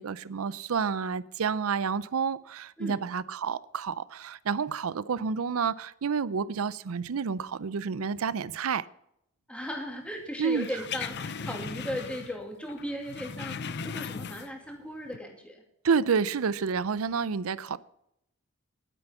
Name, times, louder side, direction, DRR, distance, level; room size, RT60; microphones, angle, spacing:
voice 1, 0.0-8.9 10.4-10.7 15.8-17.8, right 6 dB, 80° right, 0.5 m, -29 dB
voice 2, 9.5-15.6, equal, 5° left, 2.5 m, -37 dB
sound 1, 10.5-12.4 12.7-14.7 15.0-15.2, left 6 dB, 55° left, 0.6 m, -38 dB
11.5 x 10.0 x 5.7 m
head